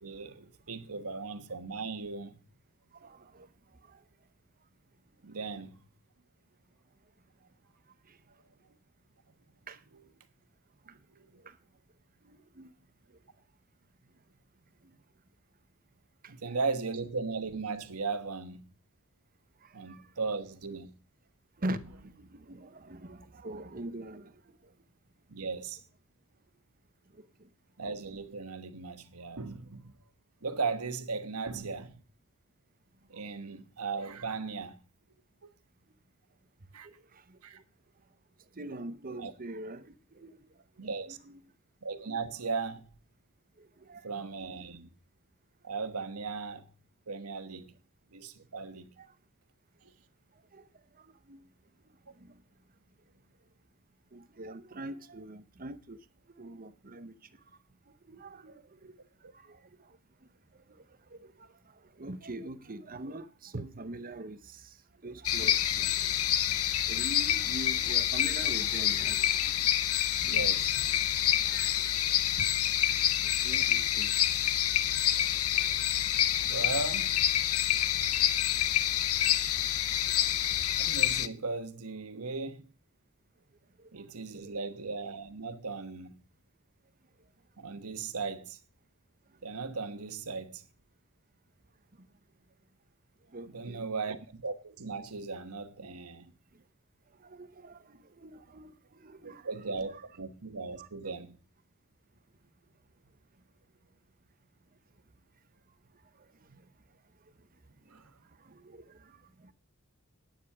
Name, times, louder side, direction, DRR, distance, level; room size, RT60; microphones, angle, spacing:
voice 1, 0.0-2.4 5.2-5.8 10.9-11.0 16.3-18.6 19.7-20.9 25.3-25.8 27.8-29.9 30.4-32.0 33.1-34.8 36.7-36.9 37.4-37.6 39.2-39.3 40.8-41.2 41.8-42.9 44.0-44.9 45.6-46.7 47.1-47.7 48.1-48.9 59.2-59.3 70.2-70.8 76.4-77.2 80.8-82.7 83.9-86.1 87.6-88.6 89.4-90.6 93.5-96.3 99.2-101.4 107.9-108.0, right 4 dB, 85° right, 1.3 m, -37 dB
voice 2, 3.0-3.5 3.9-4.0 9.7-9.8 11.4-11.5 12.2-12.7 16.4-16.6 19.9-20.0 21.6-24.3 27.2-27.5 33.2-33.3 36.8-36.9 37.3-37.4 38.6-40.3 41.1-41.4 43.6-44.7 49.0-49.1 50.5-50.7 51.3-51.4 52.2-52.4 54.1-56.0 56.4-57.1 58.1-58.9 59.4-59.6 61.1-61.5 62.0-64.7 65.0-65.9 66.9-69.5 70.2-70.9 71.4-71.8 72.4-72.5 73.4-74.1 84.3-84.5 93.3-93.9 97.2-98.7 99.0-100.1 100.8-100.9 108.5-109.0 109.4-109.5, right 1 dB, 40° right, 0.9 m, -43 dB
sound 1, 65.2-81.3, left 11 dB, 75° left, 0.8 m, -27 dB
10.0 x 9.1 x 4.8 m
head